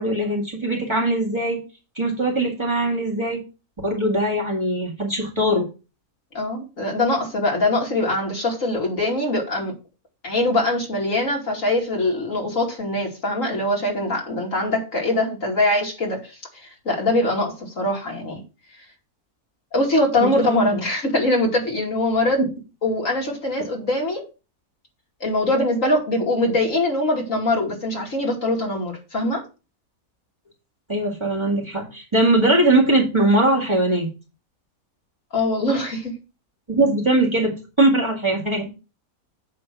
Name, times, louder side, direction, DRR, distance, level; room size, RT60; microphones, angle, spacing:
voice 1, 0.0-1.6 2.0-3.4 3.8-5.7 20.2-20.8 22.4-22.5 30.9-34.1 36.7-37.5 37.8-38.8, right 1 dB, 20° right, 2.1 m, -21 dB
voice 2, 6.3-9.7 10.2-16.3 16.6-18.4 19.7-22.4 22.8-24.2 25.2-29.4 35.3-36.1, left 1 dB, 60° left, 2.9 m, -22 dB
9.2 x 3.5 x 6.0 m
omnidirectional pair, 1.5 m